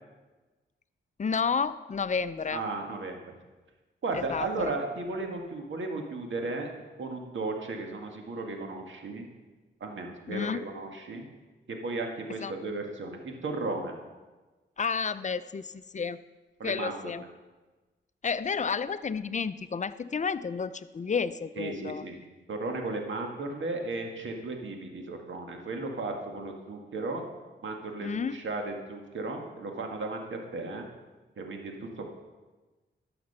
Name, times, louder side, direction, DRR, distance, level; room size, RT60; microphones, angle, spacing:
voice 1, 1.2-2.6 4.1-4.7 10.3-10.6 12.4-12.5 14.8-16.2 16.6-17.2 18.2-22.0 28.0-28.4, left 5 dB, 35° left, 14 dB, 0.5 m, -31 dB
voice 2, 2.5-3.2 4.0-6.7 7.0-9.3 9.8-11.3 11.7-13.9 16.6-16.9 21.6-22.2 22.5-27.2 27.6-30.9 31.4-32.0, right 3 dB, 70° right, 3 dB, 1.8 m, -35 dB
12.0 x 7.0 x 5.5 m, 1.2 s
cardioid pair, 60°, 20 cm